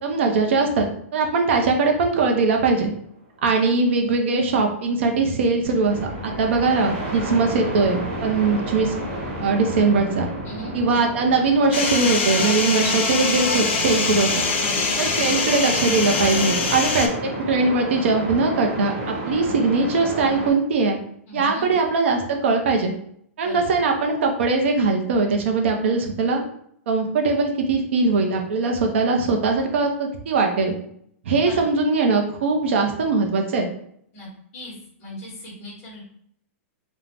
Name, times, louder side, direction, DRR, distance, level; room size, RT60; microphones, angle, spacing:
voice 1, 0.0-2.9 3.4-9.0 9.4-10.3 10.7-14.3 15.0-17.1 17.5-21.0 21.3-22.9 23.4-26.4 26.9-30.7 31.3-33.7, right 3 dB, 55° right, 3 dB, 0.5 m, -21 dB
sound 1, 5.6-20.5, equal, 25° right, 0.8 m, -31 dB
sound 2, 11.7-17.1, left 4 dB, 50° left, 0.4 m, -23 dB
voice 2, 14.5-15.0 21.3-21.8 23.4-23.6 31.4-31.7 34.1-34.3 34.5-34.7 35.0-36.0, left 1 dB, 25° left, -7 dB, 1.0 m, -37 dB
2.5 x 2.0 x 3.2 m, 0.69 s
hypercardioid pair, 175°, 8 cm